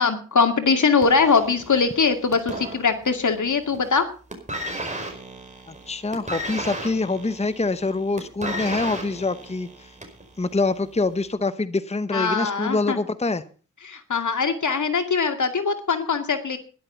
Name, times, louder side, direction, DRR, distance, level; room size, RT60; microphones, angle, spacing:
voice 1, 0.0-4.1 12.1-13.0 13.8-16.6, left 5 dB, 70° left, 7 dB, 2.3 m, -22 dB
sound 1, 1.0-3.3 3.6-4.0 4.3-10.3 11.1-11.2, right 1 dB, 25° right, 5.1 m, -34 dB
voice 2, 5.7-9.9 10.4-13.4, left 3 dB, 20° left, 13 dB, 0.9 m, -25 dB
13.0 x 11.5 x 5.6 m, 0.39 s
cardioid pair, 50°, 31 cm